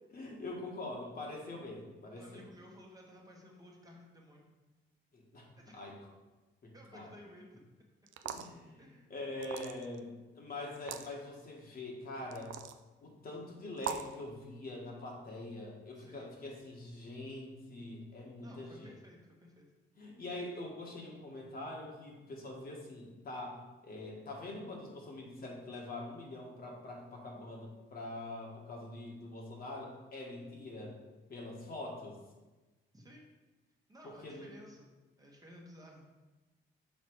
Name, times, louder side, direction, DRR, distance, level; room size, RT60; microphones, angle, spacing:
voice 1, 0.1-2.4 5.1-6.0 6.6-7.1 8.2-8.8 9.1-12.5 13.0-19.0 19.9-31.0 31.3-32.2 34.0-34.5, left 2 dB, 50° left, -2 dB, 1.7 m, -44 dB
voice 2, 2.2-4.5 5.6-5.8 6.7-7.6 8.8-9.1 16.0-16.4 18.4-19.7 32.9-33.3 33.9-36.1, equal, 20° right, -2 dB, 1.3 m, -55 dB
sound 1, 8.1-8.6 9.4-10.0 10.8-11.1 12.3-12.8 13.8-14.1, right 9 dB, 75° right, 0.5 m, -40 dB
5.9 x 4.1 x 4.7 m, 1.1 s
cardioid pair, 90°, 20 cm